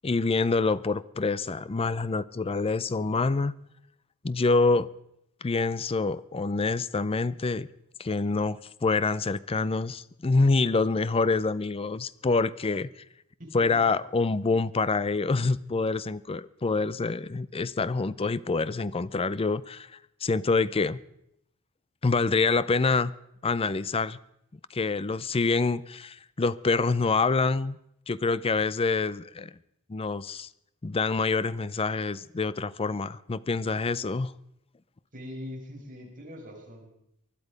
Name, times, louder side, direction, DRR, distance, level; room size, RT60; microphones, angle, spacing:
voice 1, 0.0-3.5 4.2-4.9 5.4-7.7 8.0-12.9 13.5-21.0 22.0-23.1 23.4-24.2 24.7-27.8 28.1-29.5 29.9-30.5 30.8-34.3, left 3 dB, 25° left, 0.5 m, -26 dB
voice 2, 13.4-13.8 35.1-36.9, left 1 dB, 40° right, 5.6 m, -42 dB
20.5 x 12.0 x 5.2 m
head